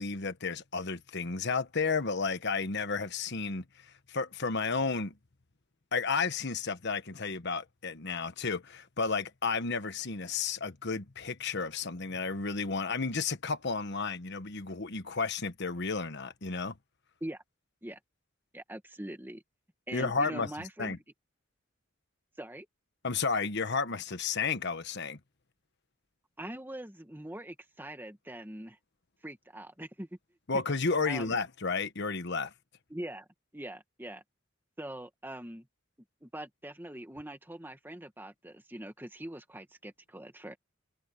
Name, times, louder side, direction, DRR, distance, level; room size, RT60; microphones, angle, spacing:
voice 1, 0.0-5.1 5.9-16.7 19.9-20.5 20.8-21.0 23.0-25.2 30.5-32.5, left 4 dB, 60° left, 1.3 m, -32 dB
voice 2, 18.5-19.4 19.9-21.0 22.4-22.7 26.4-28.8 29.2-30.1 30.5-30.6 31.1-31.4 32.9-33.3 33.5-34.2 34.8-35.7 36.2-40.6, right 1 dB, 10° right, 1.9 m, -42 dB
head